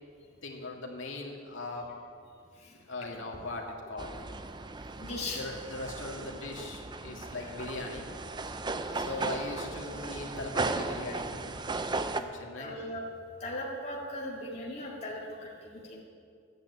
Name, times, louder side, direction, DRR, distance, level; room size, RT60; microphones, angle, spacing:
voice 1, 0.4-1.9 2.7-4.1 5.3-8.1 8.9-11.7 12.1-12.8, left 2 dB, 80° left, 0 dB, 2.2 m, -39 dB
sound 1, 4.0-12.2, right 3 dB, 25° right, 0.5 m, -36 dB
voice 2, 5.0-5.4 7.4-7.5 8.8-9.3 12.1-12.2 12.6-13.0 13.4-16.0, left 1 dB, 35° left, -5 dB, 2.1 m, -39 dB
12.0 x 9.2 x 8.4 m, 2.3 s
head